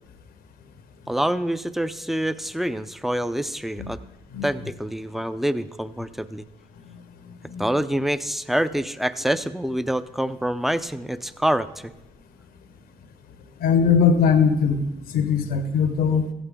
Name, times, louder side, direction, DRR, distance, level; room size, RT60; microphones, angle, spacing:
voice 1, 1.1-4.0 4.4-6.4 7.6-11.9, right 1 dB, ahead, 13 dB, 0.6 m, -26 dB
voice 2, 13.6-14.8 15.1-16.2, left 6 dB, 85° left, 8 dB, 1.1 m, -20 dB
15.0 x 8.8 x 3.7 m, 0.93 s
supercardioid pair, 50°, 15 cm